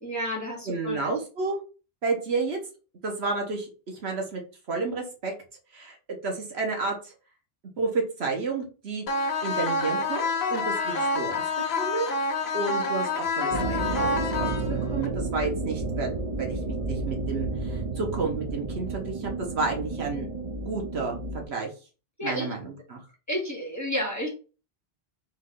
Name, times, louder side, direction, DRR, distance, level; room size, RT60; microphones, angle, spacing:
voice 1, 0.0-1.1 22.2-22.5 23.3-24.3, equal, 15° left, -2 dB, 1.4 m, -31 dB
voice 2, 0.7-1.6 2.0-2.6 3.0-4.4 4.7-5.3 5.7-6.0 6.2-7.1 7.8-9.1 9.4-12.1 12.5-20.3 20.6-21.2 21.5-21.7 22.2-23.0, right 3 dB, 75° right, 1 dB, 1.4 m, -31 dB
sound 1, 9.1-15.1, left 3 dB, 75° left, 0.9 m, -28 dB
sound 2, 13.5-21.4, right 3 dB, 40° right, 0.6 m, -31 dB
3.6 x 3.2 x 3.7 m, 0.35 s
omnidirectional pair, 1.1 m